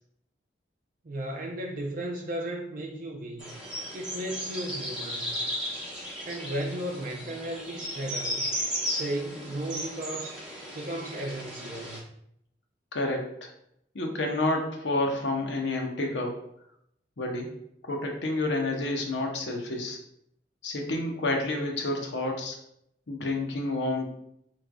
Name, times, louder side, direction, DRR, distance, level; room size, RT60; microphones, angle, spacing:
voice 1, 1.0-3.5 3.9-5.4 6.3-8.5 8.9-10.4 10.7-12.0, right 1 dB, 50° right, 0 dB, 0.5 m, -35 dB
sound 1, 3.4-12.0, equal, 5° right, 0.9 m, -35 dB
voice 2, 12.9-13.5 13.9-16.4 17.2-17.5 17.8-20.0 20.6-22.6 23.1-24.1, left 2 dB, 85° left, 1 dB, 0.8 m, -29 dB
5.0 x 3.1 x 2.2 m, 0.73 s
head